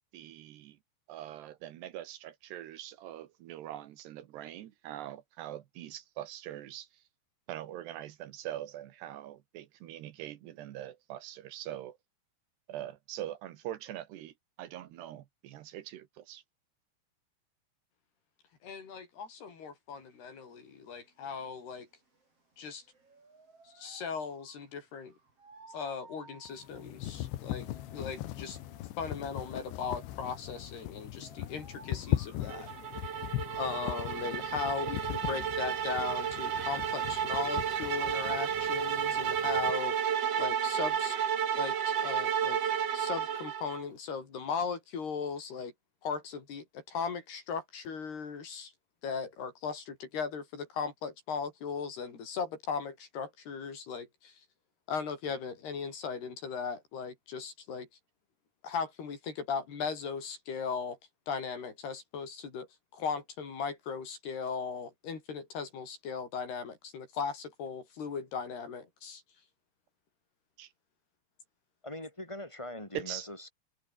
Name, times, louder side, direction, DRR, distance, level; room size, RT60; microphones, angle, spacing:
voice 1, 0.1-0.8 1.1-6.9 7.5-12.0 12.7-16.4 70.6-70.7 72.9-73.3, right 12 dB, 75° right, 3.4 m, -43 dB
voice 2, 18.6-21.9 22.6-22.8 23.6-25.1 25.7-27.7 27.9-28.6 29.0-32.7 33.6-40.1 40.4-41.2 41.5-42.6 42.9-45.7 46.0-48.7 49.0-54.4 54.9-57.9 58.6-61.0 61.3-62.7 62.9-69.2, left 6 dB, 65° left, 6.7 m, -38 dB
sound 1, 19.9-38.0, right 3 dB, 35° right, 6.3 m, -58 dB
sound 2, 26.5-39.7, left 15 dB, 90° left, 3.6 m, -39 dB
sound 3, 32.5-43.8, right 8 dB, 50° right, 2.2 m, -32 dB
voice 3, 71.8-73.5, left 1 dB, 5° left, 6.1 m, -42 dB
omnidirectional pair, 5.0 m